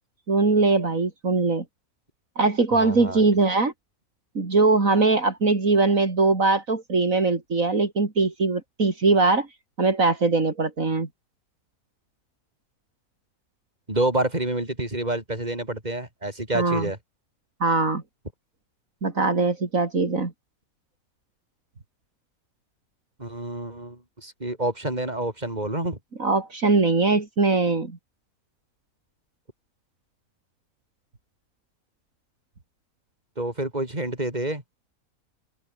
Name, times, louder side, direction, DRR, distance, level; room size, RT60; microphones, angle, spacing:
voice 1, 0.3-1.6 2.4-3.7 4.4-9.5 9.8-11.1 16.5-16.9 17.6-18.0 19.0-20.3 26.2-28.0, right 3 dB, 65° right, 3.5 m, -21 dB
voice 2, 2.7-3.2 13.9-17.0 23.2-26.0 33.4-34.6, right 1 dB, 30° right, 5.5 m, -28 dB
open air
omnidirectional pair, 1.5 m